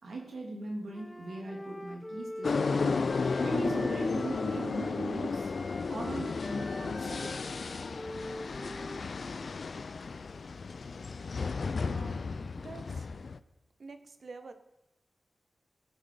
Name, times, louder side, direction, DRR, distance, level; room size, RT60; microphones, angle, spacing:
voice 1, 0.0-2.9 3.4-5.5 5.9-7.3, right 2 dB, 90° right, 0 dB, 3.0 m, -39 dB
Wind instrument woodwind instrument, 0.9-5.0 5.3-9.6, left 1 dB, 15° left, 0.7 m, -45 dB
sound 1, 2.4-13.4, left 4 dB, 65° left, 0.5 m, -33 dB
voice 2, 11.8-12.2 12.6-13.1 13.8-14.5, right 4 dB, 65° right, 9 dB, 1.1 m, -47 dB
16.5 x 8.0 x 5.0 m, 0.91 s
wide cardioid pair, 85°, 0 cm